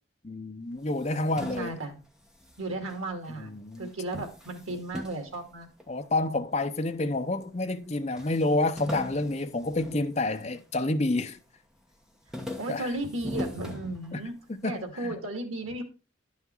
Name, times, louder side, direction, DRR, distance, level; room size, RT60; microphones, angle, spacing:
voice 1, 0.2-1.7 3.4-3.9 5.9-11.4 12.7-12.9 14.1-14.2 14.5-15.2, left 2 dB, 30° left, 0.7 m, -29 dB
sound 1, 0.8-3.4 3.7-6.2 6.8-7.5 7.8-7.9 8.2-10.8 11.1-11.6 11.9-14.5, left 1 dB, 5° right, 1.1 m, -41 dB
voice 2, 1.5-2.0 2.6-3.5 3.8-5.7 12.3-14.3 14.6-15.8, right 2 dB, 90° right, 2.3 m, -35 dB
11.0 x 5.7 x 4.6 m
head